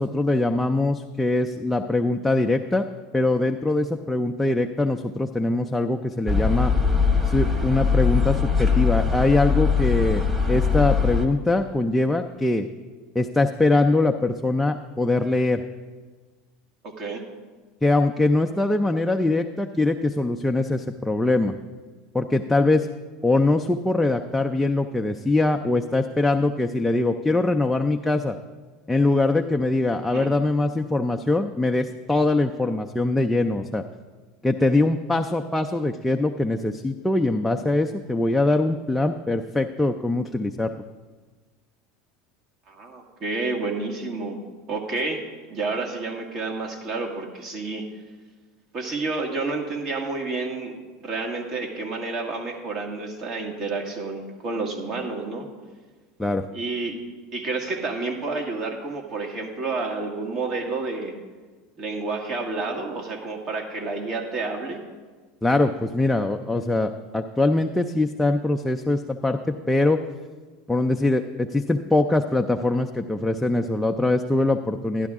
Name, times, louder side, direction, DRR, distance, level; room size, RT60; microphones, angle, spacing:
voice 1, 0.0-2.9 3.1-6.7 7.2-12.7 13.1-15.6 17.8-21.5 22.1-22.9 23.2-28.4 28.9-33.8 34.4-40.7 56.2-56.5 65.4-70.0 70.7-75.1, left 2 dB, 5° left, 3 dB, 0.5 m, -22 dB
sound 1, 6.3-11.3, left 5 dB, 15° right, 1.3 m, -21 dB
voice 2, 16.8-17.2 30.0-30.3 42.7-44.4 44.7-45.2 45.5-47.8 48.7-50.7 51.0-55.5 56.5-57.0 57.3-61.1 61.8-64.8, right 3 dB, 50° right, 1 dB, 1.7 m, -30 dB
11.5 x 11.5 x 3.6 m, 1.4 s
hypercardioid pair, 95°, 0 cm